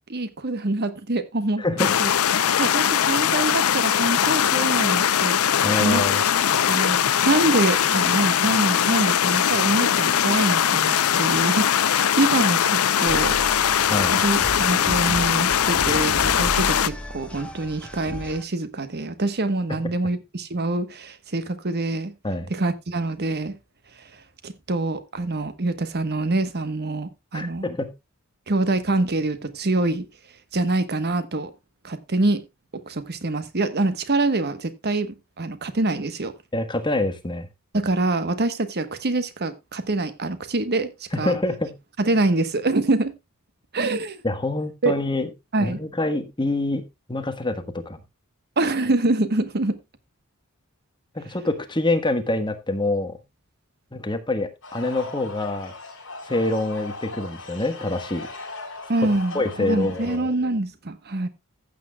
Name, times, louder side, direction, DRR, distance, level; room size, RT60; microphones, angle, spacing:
voice 1, 0.1-1.6 2.0-2.1 2.4-6.0 6.7-13.4 14.1-22.1 22.5-23.6 24.0-27.7 28.5-30.1 30.5-31.5 31.8-32.4 32.9-36.3 37.7-41.4 42.0-43.1 43.7-44.2 44.8-44.9 45.5-45.8 48.6-49.8 58.9-61.3, right 2 dB, 50° right, 1.2 m, -25 dB
voice 2, 1.6-1.9 5.6-6.2 13.9-14.2 19.7-19.8 22.2-22.5 27.3-27.9 36.5-37.5 41.1-41.7 44.2-45.3 45.6-46.8 47.1-48.0 51.1-53.2 53.9-55.7 56.3-58.3 59.0-59.1 59.3-60.3, left 2 dB, 20° left, 1.3 m, -26 dB
sound 1, 1.8-16.9, left 9 dB, 90° left, 0.6 m, -21 dB
sound 2, 13.1-18.4, equal, 5° left, 1.8 m, -34 dB
sound 3, 54.6-60.2, left 3 dB, 65° left, 5.1 m, -38 dB
15.0 x 8.5 x 2.3 m
head